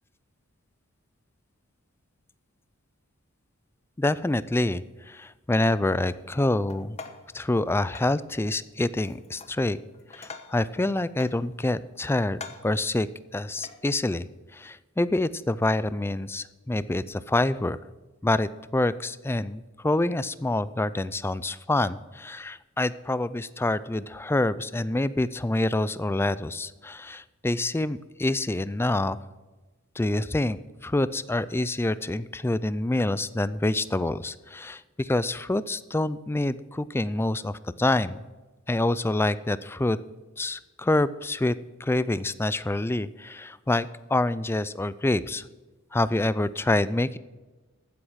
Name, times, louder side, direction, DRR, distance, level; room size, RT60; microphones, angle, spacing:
voice 1, 4.0-7.0 7.3-9.8 10.1-13.1 13.3-14.3 14.5-17.8 18.2-29.2 30.0-30.6 30.8-38.2 38.7-40.0 40.4-45.4 45.9-47.2, left 2 dB, 10° left, 16 dB, 0.4 m, -26 dB
sound 1, 6.7-7.3 7.9-8.2 9.0-9.6 9.9-10.7 11.2-11.9 12.3-12.8 13.6-13.8, left 4 dB, 30° left, 1.0 m, -44 dB
15.0 x 8.0 x 5.7 m, 1.2 s
head